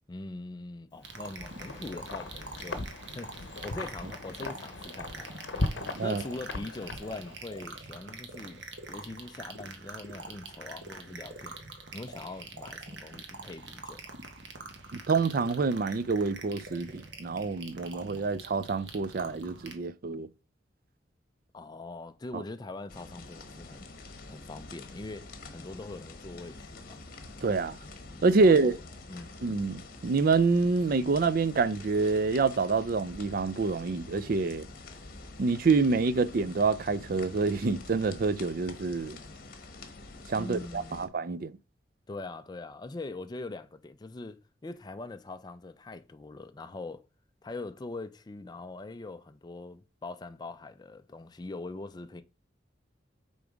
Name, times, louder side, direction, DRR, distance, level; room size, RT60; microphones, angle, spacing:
voice 1, 0.1-8.6 8.9-11.6 11.9-14.2 21.5-23.9 24.3-27.0 28.3-28.8 29.1-29.4 40.4-41.1 42.1-47.1 47.4-52.2, left 2 dB, 20° left, 0.4 m, -42 dB
sound 1, 1.0-19.8, right 3 dB, 70° right, 1.3 m, -45 dB
Wind, 1.1-7.6, left 2 dB, 75° left, 0.8 m, -38 dB
voice 2, 15.1-20.3 22.3-22.4 27.4-27.8 28.2-28.8 29.4-34.7 35.4-39.2 40.3-41.6, right 4 dB, 50° right, 0.4 m, -27 dB
sound 2, 22.9-41.1, left 3 dB, 50° left, 1.1 m, -47 dB
6.8 x 4.0 x 5.0 m
head